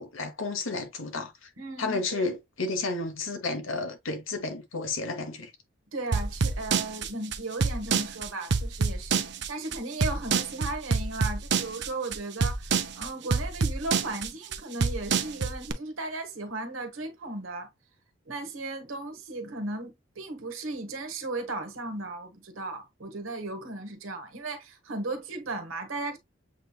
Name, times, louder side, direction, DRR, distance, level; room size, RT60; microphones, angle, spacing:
voice 1, 0.0-1.5 1.8-5.5, left 3 dB, 80° left, 1.2 m, -32 dB
voice 2, 1.6-2.3 5.9-17.7 18.3-26.2, right 2 dB, 85° right, 1.3 m, -36 dB
sound 1, 6.1-15.7, right 5 dB, 55° right, 0.6 m, -26 dB
7.5 x 3.0 x 2.3 m
head